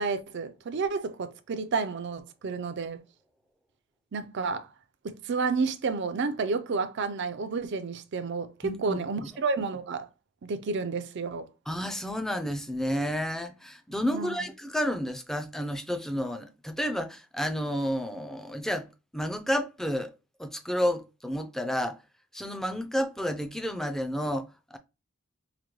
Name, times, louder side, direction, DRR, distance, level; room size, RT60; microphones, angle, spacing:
voice 1, 0.0-3.0 4.1-4.7 5.0-10.1 10.4-11.5 14.1-14.4, right 4 dB, 60° right, 0.5 m, -31 dB
voice 2, 8.6-9.0 11.7-18.9 19.1-20.1 20.4-22.0 22.3-24.8, equal, ahead, 0.4 m, -31 dB
4.9 x 2.2 x 3.0 m
head